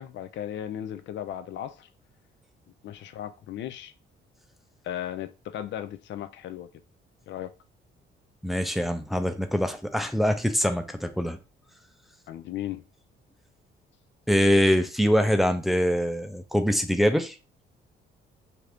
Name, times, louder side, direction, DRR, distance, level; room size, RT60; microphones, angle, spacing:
voice 1, 0.0-1.9 2.8-3.9 4.8-6.7 7.3-7.5 12.3-12.8, left 11 dB, 65° left, 0.4 m, -36 dB
voice 2, 8.4-11.4 14.3-17.3, equal, ahead, 0.4 m, -24 dB
2.8 x 2.5 x 3.3 m
cardioid pair, 90°, 20 cm